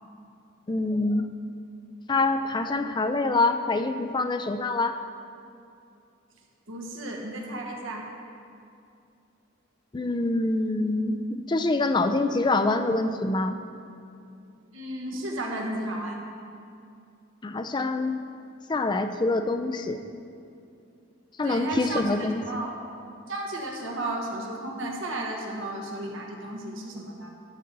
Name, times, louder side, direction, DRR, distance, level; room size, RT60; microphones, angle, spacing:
voice 1, 0.7-1.3 2.1-5.0 9.9-13.6 17.4-18.2 18.7-20.0 21.4-22.4, left 2 dB, 20° left, 8 dB, 0.4 m, -25 dB
voice 2, 6.7-8.1 14.7-16.3 21.4-22.8 23.3-27.3, right 1 dB, 75° right, 0 dB, 1.2 m, -33 dB
11.5 x 3.9 x 6.7 m, 2.6 s
head